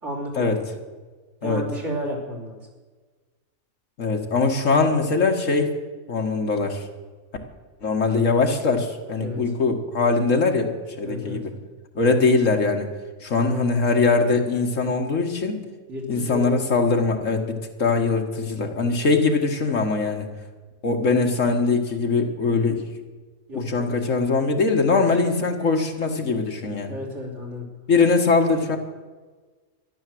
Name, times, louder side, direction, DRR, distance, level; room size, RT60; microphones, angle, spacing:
voice 1, 0.0-0.6 1.4-2.6 9.2-9.4 11.0-11.4 13.4-13.9 15.9-16.5 23.5-24.0 26.9-27.6, left 1 dB, 55° right, -2 dB, 4.0 m, -32 dB
voice 2, 4.0-5.7 6.1-6.9 7.8-11.5 12.0-12.9 13.2-15.6 16.1-20.3 20.8-22.8 23.5-26.9 27.9-28.8, left 4 dB, 65° left, 4 dB, 2.0 m, -22 dB
13.5 x 11.5 x 7.7 m, 1.4 s
omnidirectional pair, 1.4 m